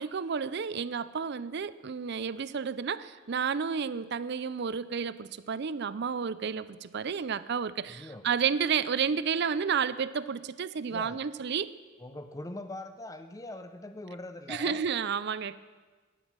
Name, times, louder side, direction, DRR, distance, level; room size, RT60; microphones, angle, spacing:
voice 1, 0.0-11.7 14.5-15.5, right 6 dB, 50° right, 16 dB, 0.4 m, -31 dB
voice 2, 7.9-8.3 10.9-11.2 12.0-14.8, left 2 dB, 15° left, 8 dB, 0.5 m, -42 dB
15.0 x 11.0 x 6.1 m, 1.3 s
head